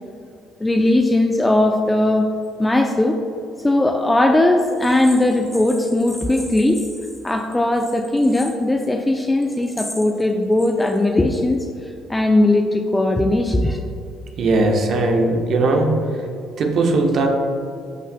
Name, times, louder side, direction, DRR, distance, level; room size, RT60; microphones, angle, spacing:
voice 1, 0.6-2.3 2.6-3.2 3.6-6.9 7.2-11.6 12.1-13.8, left 1 dB, 15° left, 3 dB, 0.6 m, -18 dB
voice 2, 14.4-15.9 16.6-17.3, right 2 dB, 55° right, 2 dB, 1.2 m, -18 dB
13.0 x 5.8 x 2.3 m, 2.6 s
hypercardioid pair, 55°, 0 cm